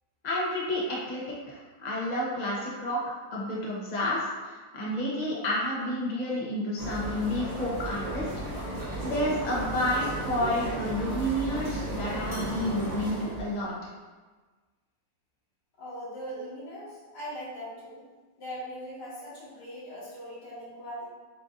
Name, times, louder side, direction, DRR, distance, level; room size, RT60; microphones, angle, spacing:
voice 1, 0.2-1.2 1.5-8.3 8.7-13.9, equal, 40° left, -5 dB, 0.6 m, -30 dB
sound 1, 6.8-13.6, right 1 dB, 25° right, 1.0 m, -34 dB
voice 2, 15.8-18.0 18.4-21.1, equal, 70° left, -9 dB, 2.3 m, -40 dB
7.4 x 2.6 x 2.5 m, 1.3 s
omnidirectional pair, 1.9 m